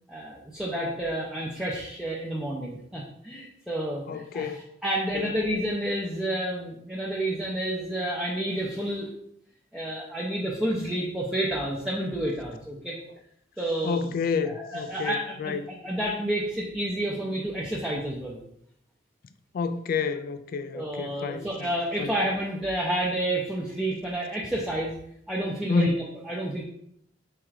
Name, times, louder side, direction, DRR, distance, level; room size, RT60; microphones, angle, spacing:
voice 1, 0.1-9.1 9.7-13.0 13.6-14.1 14.5-18.4 20.7-24.9 25.3-26.6, right 1 dB, 5° right, 0.5 m, -30 dB
voice 2, 4.1-4.6 5.1-5.3 13.8-15.6 19.5-21.5 22.0-22.1 25.7-25.9, left 5 dB, 50° left, 0.3 m, -29 dB
4.6 x 4.2 x 2.4 m
head